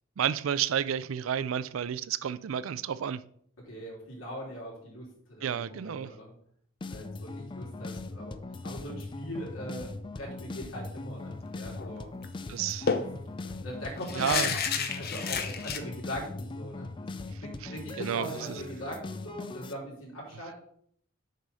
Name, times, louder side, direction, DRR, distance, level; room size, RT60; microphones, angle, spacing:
voice 1, 0.2-3.2 5.4-6.1 12.5-12.9 14.2-14.6 18.0-18.5, right 8 dB, 80° right, 0.4 m, -31 dB
voice 2, 3.6-6.3 6.9-12.1 13.0-13.1 13.6-14.6 14.9-16.9 17.4-20.5, equal, 85° left, 3.3 m, -40 dB
sound 1, 6.8-19.7, left 3 dB, 25° left, 0.4 m, -40 dB
sound 2, 11.7-11.9 12.2-12.3 12.9-15.8, left 6 dB, 50° left, 0.7 m, -31 dB
6.6 x 4.8 x 5.4 m
head